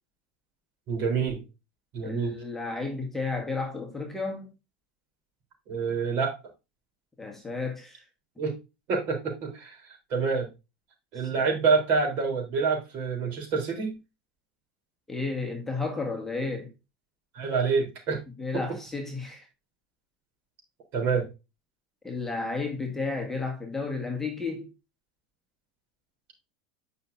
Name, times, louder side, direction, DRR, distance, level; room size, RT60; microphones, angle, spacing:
voice 1, 0.9-1.4 1.9-2.4 5.7-6.4 8.4-8.6 8.9-9.8 10.1-10.5 11.1-13.9 17.3-18.2 18.5-18.6 20.9-21.3, right 5 dB, 50° right, 3.7 m, -27 dB
voice 2, 2.0-4.5 7.2-8.0 11.3-11.5 15.1-16.7 18.4-19.5 22.0-24.7, left 3 dB, 5° left, 1.5 m, -32 dB
9.2 x 5.6 x 2.7 m
supercardioid pair, 125°, 5 cm